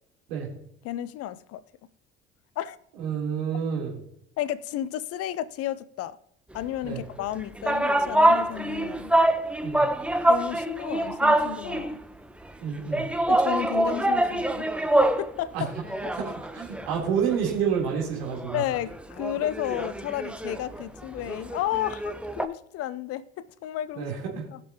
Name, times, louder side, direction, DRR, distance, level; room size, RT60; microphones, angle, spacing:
voice 1, 0.8-1.6 2.6-2.8 4.4-6.2 6.5-9.1 10.3-12.0 13.3-14.7 15.2-15.7 18.5-24.6, left 12 dB, 50° left, 0.6 m, -32 dB
voice 2, 3.0-4.0 6.8-7.0 9.6-9.8 12.6-13.1 15.5-15.6 16.2-18.6 23.9-24.4, right 7 dB, 70° right, 3.5 m, -29 dB
sound 1, 7.2-12.0 12.9-15.3 15.6-17.5 17.9-18.0 18.3-22.5, right 1 dB, 5° right, 0.8 m, -25 dB
19.0 x 6.9 x 2.9 m
figure-of-eight pair, 55°, 30 cm